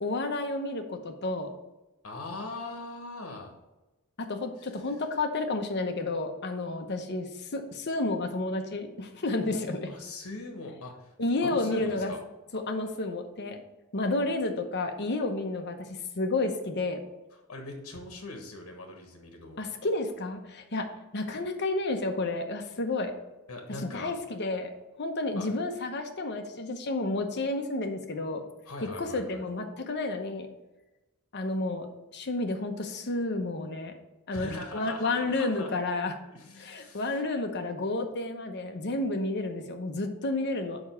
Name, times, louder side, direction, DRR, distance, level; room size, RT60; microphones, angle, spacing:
voice 1, 0.0-1.5 4.2-9.9 11.2-12.1 12.5-13.6 13.9-15.9 16.1-17.0 19.6-20.9 21.1-23.1 23.9-24.7 25.0-28.4 29.0-30.5 31.3-31.9 32.1-33.9 34.3-36.1 36.6-40.8, left 2 dB, 50° left, 5 dB, 0.9 m, -31 dB
voice 2, 2.0-3.5 9.9-11.1 11.4-12.2 17.5-19.6 23.5-24.1 25.3-25.5 28.7-29.4 34.3-35.8 36.3-37.2, left 2 dB, 70° left, 2 dB, 1.3 m, -41 dB
5.2 x 4.8 x 6.2 m, 1.0 s
head